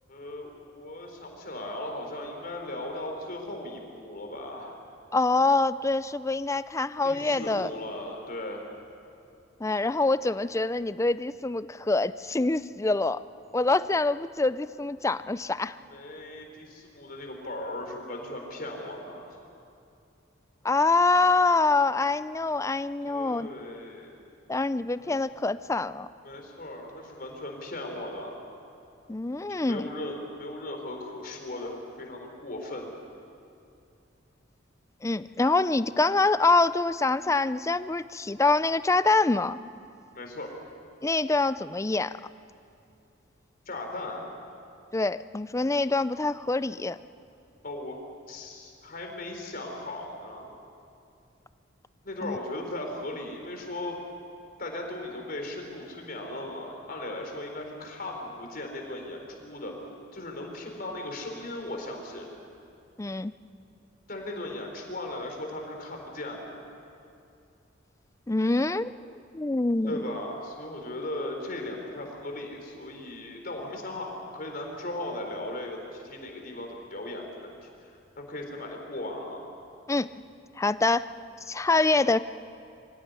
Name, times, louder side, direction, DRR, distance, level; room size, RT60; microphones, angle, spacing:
voice 1, 0.1-4.8 7.0-8.6 15.9-19.3 23.0-24.1 25.0-25.2 26.2-28.4 29.5-32.9 40.1-40.5 43.7-44.3 47.6-48.0 48.3-50.5 52.0-54.0 54.6-59.7 60.1-62.3 64.1-66.6 69.9-79.4, left 1 dB, 50° left, 2 dB, 4.2 m, -37 dB
voice 2, 5.1-7.7 9.6-13.2 13.5-15.8 20.6-23.5 24.5-26.1 29.1-29.9 35.0-39.6 41.0-42.2 44.9-47.0 52.2-52.4 63.0-63.3 68.3-70.0 79.9-80.1 80.6-81.1 81.5-82.2, left 3 dB, 15° left, 15 dB, 0.4 m, -25 dB
24.5 x 16.5 x 9.5 m, 2.5 s
head